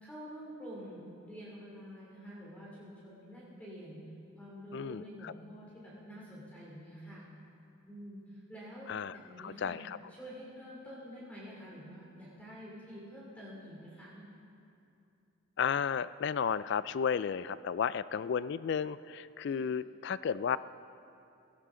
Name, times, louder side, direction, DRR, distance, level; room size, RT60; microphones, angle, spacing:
voice 1, 0.0-4.0 4.4-7.3 7.8-8.2 8.5-9.8 10.1-14.2 19.5-19.6, equal, 5° left, -7 dB, 2.8 m, -48 dB
voice 2, 4.7-5.3 8.9-10.0 15.6-20.6, left 7 dB, 55° left, 17 dB, 0.3 m, -33 dB
16.5 x 16.5 x 3.8 m, 2.6 s
head